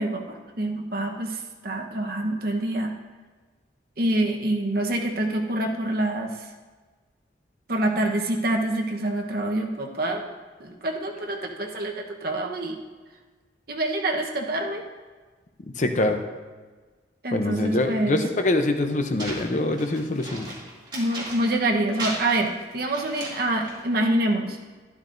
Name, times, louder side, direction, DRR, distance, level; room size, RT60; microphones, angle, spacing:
voice 1, 0.0-2.9 4.0-6.3 7.7-10.3 10.6-12.8 13.7-14.8 17.2-18.3 20.9-24.6, right 1 dB, 55° right, 2 dB, 1.1 m, -26 dB
voice 2, 15.8-16.2 17.3-20.5, left 2 dB, 40° left, 6 dB, 0.6 m, -24 dB
sound 1, 19.2-21.7 21.9-23.8, right 1 dB, 25° right, 2.5 m, -36 dB
12.0 x 12.0 x 2.6 m, 1.4 s
head